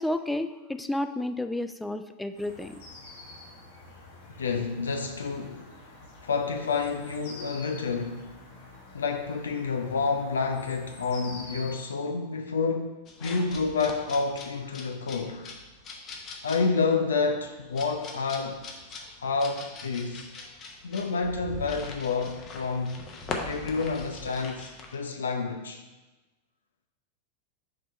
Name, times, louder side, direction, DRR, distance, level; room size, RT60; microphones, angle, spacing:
voice 1, 0.0-2.8, left 1 dB, 5° left, 0.3 m, -31 dB
sound 1, 2.4-11.8, left 2 dB, 55° left, 1.5 m, -48 dB
voice 2, 4.4-5.6 6.2-8.2 8.9-15.5 16.4-18.7 19.2-20.2 20.8-23.0 23.4-25.8, left 4 dB, 70° left, 0.4 m, -29 dB
sound 2, 13.1-24.9, left 3 dB, 30° left, 0.9 m, -41 dB
5.2 x 4.2 x 5.2 m
figure-of-eight pair, 90°, 0 cm